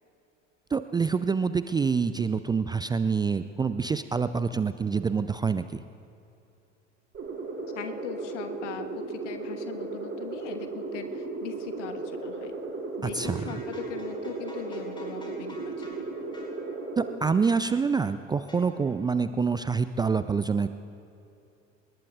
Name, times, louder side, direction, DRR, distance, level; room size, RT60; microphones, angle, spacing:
voice 1, 0.7-5.7 13.0-13.6 17.0-20.7, right 5 dB, 10° right, 11 dB, 0.4 m, -26 dB
sound 1, 7.1-17.2, right 3 dB, 35° right, 4.2 m, -36 dB
voice 2, 7.7-12.5 13.0-16.0, left 8 dB, 70° left, 8 dB, 1.5 m, -40 dB
sound 2, 13.1-16.1 16.3-16.6 17.4-17.7 18.5-18.8, left 1 dB, 10° left, 5.1 m, -49 dB
30.0 x 19.5 x 2.4 m, 2.7 s
figure-of-eight pair, 70°, 38 cm